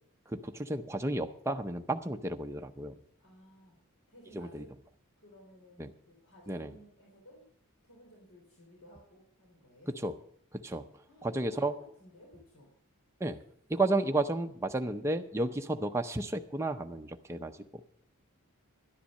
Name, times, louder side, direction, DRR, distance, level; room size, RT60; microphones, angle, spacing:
voice 1, 0.3-3.0 4.3-4.6 5.8-5.9 6.5-6.7 10.0-10.1 10.5-10.9 11.2-11.7 13.2-13.4 13.7-17.8, right 2 dB, 10° right, 5 dB, 0.6 m, -32 dB
voice 2, 3.2-3.8 4.1-4.8 5.2-7.5 7.8-9.9 11.1-12.7 14.7-15.0, equal, 70° left, -1 dB, 3.4 m, -57 dB
11.5 x 10.0 x 6.4 m, 0.64 s
head